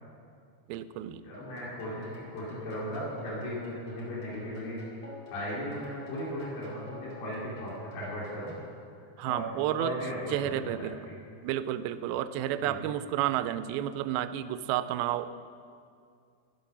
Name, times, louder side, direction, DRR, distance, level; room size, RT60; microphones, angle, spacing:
voice 1, 0.7-1.2 9.2-9.9 10.3-11.0 11.4-15.3, right 12 dB, 85° right, 12 dB, 2.2 m, -31 dB
voice 2, 1.2-4.8 5.3-8.6 9.2-9.5 9.8-11.1 12.6-12.8, equal, 70° left, -7 dB, 5.2 m, -37 dB
sound 1, 1.3-8.7, left 2 dB, 50° left, 3.2 m, -50 dB
12.5 x 12.0 x 5.7 m, 2.3 s
omnidirectional pair, 4.7 m